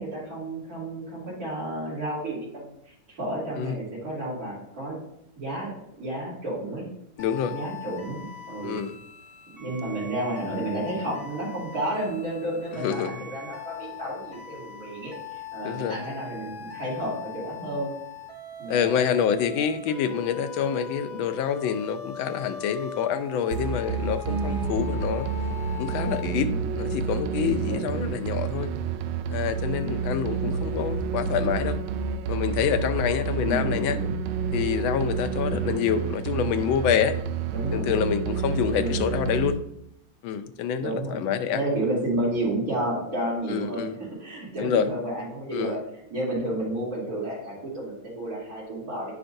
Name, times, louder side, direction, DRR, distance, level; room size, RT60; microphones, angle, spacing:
voice 1, 0.0-5.0 5.4-6.9 7.5-8.8 9.6-17.9 18.6-18.9 26.3-26.6 27.7-27.9 29.8-30.5 33.4-34.2 37.5-38.0 38.8-39.0 40.8-41.2 41.5-45.8 46.1-49.1, right 1 dB, 45° right, -10 dB, 3.6 m, -31 dB
voice 2, 7.2-7.5 8.6-8.9 12.7-13.2 15.6-16.0 18.7-25.3 25.8-28.7 29.3-31.8 32.3-34.0 34.5-37.2 37.7-39.6 40.2-41.6 43.5-44.0 44.6-44.9 45.5-45.8, left 8 dB, 80° left, 9 dB, 1.4 m, -27 dB
sound 1, 7.2-26.2, left 4 dB, 20° left, 1.8 m, -41 dB
sound 2, 23.5-39.5, right 6 dB, 90° right, 1.4 m, -29 dB
9.8 x 5.8 x 2.6 m, 0.77 s
omnidirectional pair, 2.2 m